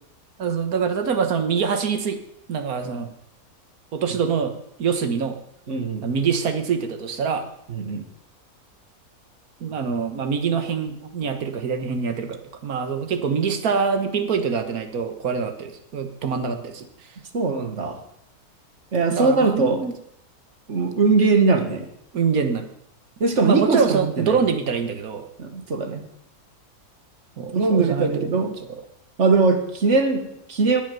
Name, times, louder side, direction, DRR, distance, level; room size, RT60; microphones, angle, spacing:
voice 1, 0.4-2.2 2.5-3.1 3.9-5.4 6.0-7.5 9.6-16.9 19.1-19.9 22.1-22.7 23.4-25.3 27.4-28.7, right 6 dB, 75° right, 8 dB, 1.8 m, -25 dB
voice 2, 5.7-6.1 7.8-8.0 17.3-18.0 18.9-19.8 20.7-21.9 23.2-24.4 25.4-26.0 27.5-28.5 29.2-30.8, right 4 dB, 50° right, 6 dB, 2.1 m, -21 dB
20.0 x 7.2 x 6.9 m, 0.75 s
omnidirectional pair, 1.6 m